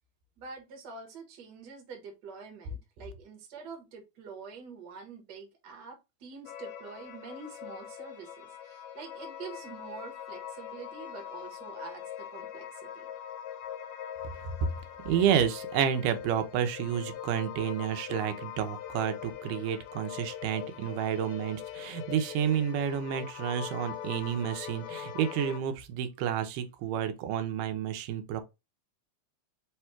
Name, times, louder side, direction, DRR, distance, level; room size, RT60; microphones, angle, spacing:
voice 1, 0.4-13.1, right 5 dB, 50° right, 1.3 m, -46 dB
sound 1, 6.5-25.6, left 10 dB, 75° left, 1.8 m, -42 dB
voice 2, 15.0-28.4, right 9 dB, 85° right, 2.3 m, -30 dB
5.1 x 2.3 x 4.3 m
omnidirectional pair, 3.6 m